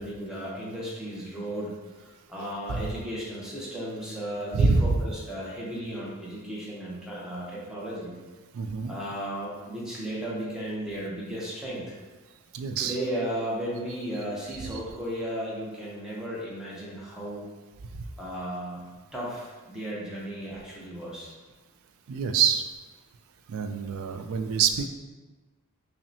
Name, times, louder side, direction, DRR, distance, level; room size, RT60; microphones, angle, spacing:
voice 1, 0.0-1.7 2.0-8.1 8.9-11.9 12.8-17.4 18.2-18.8 19.1-21.3, right 1 dB, 5° right, -6 dB, 0.8 m, -35 dB
voice 2, 2.4-2.9 4.5-5.0 8.5-8.9 12.5-13.0 14.7-14.8 22.1-22.6 23.5-24.9, right 5 dB, 75° right, 7 dB, 0.3 m, -26 dB
5.4 x 2.1 x 2.7 m, 1.3 s
head